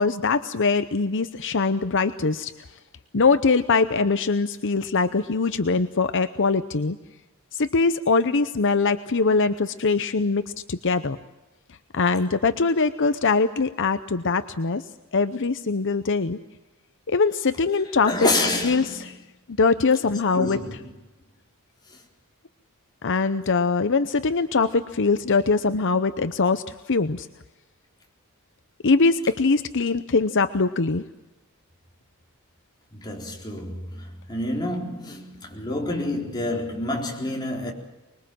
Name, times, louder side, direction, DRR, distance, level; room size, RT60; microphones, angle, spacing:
voice 1, 0.0-2.5 3.1-7.0 7.5-10.4 10.7-11.2 11.9-14.8 15.1-16.4 17.1-18.3 18.6-19.1 19.6-20.6 23.0-26.6 26.9-27.3 28.8-31.0, left 4 dB, 55° left, 0.8 m, -22 dB
voice 2, 18.1-19.2 20.3-20.9 21.9-22.0 32.9-37.7, left 2 dB, 20° left, 4.1 m, -28 dB
25.0 x 21.5 x 7.7 m
head